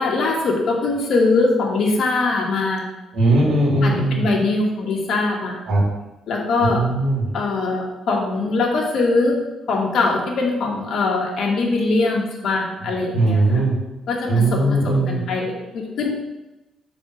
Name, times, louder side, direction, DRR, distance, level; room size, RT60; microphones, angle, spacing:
voice 1, 0.0-2.9 3.8-5.6 6.3-6.8 7.3-9.4 9.7-13.4 14.1-16.1, left 3 dB, 50° left, -1 dB, 1.1 m, -22 dB
voice 2, 3.1-4.3 5.7-5.9 6.6-7.3 12.8-13.7 14.3-15.2, right 2 dB, 80° right, -3 dB, 1.8 m, -19 dB
6.0 x 3.5 x 4.9 m, 0.99 s
cardioid pair, 180°, 0 cm